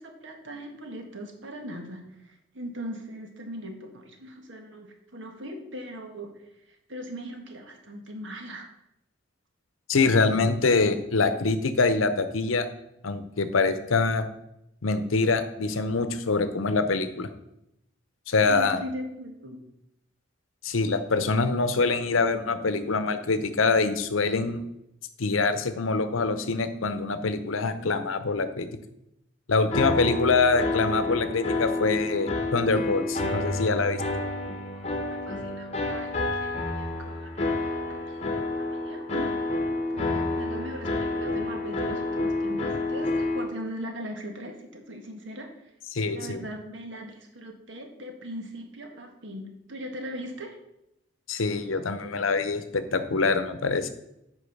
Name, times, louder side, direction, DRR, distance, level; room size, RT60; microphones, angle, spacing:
voice 1, 0.0-6.3 6.9-8.7 18.5-19.6 34.7-38.3 38.6-39.3 39.7-45.5 46.1-50.6, right 1 dB, 70° right, 3 dB, 1.6 m, -39 dB
voice 2, 9.9-12.7 13.0-14.3 14.8-17.3 18.3-18.8 20.6-24.6 25.2-28.7 29.5-34.0 45.9-46.4 51.3-53.9, left 4 dB, 85° left, 11 dB, 0.8 m, -25 dB
sound 1, 29.7-43.4, left 2 dB, 30° left, 1.0 m, -29 dB
8.4 x 5.5 x 5.4 m, 0.83 s
head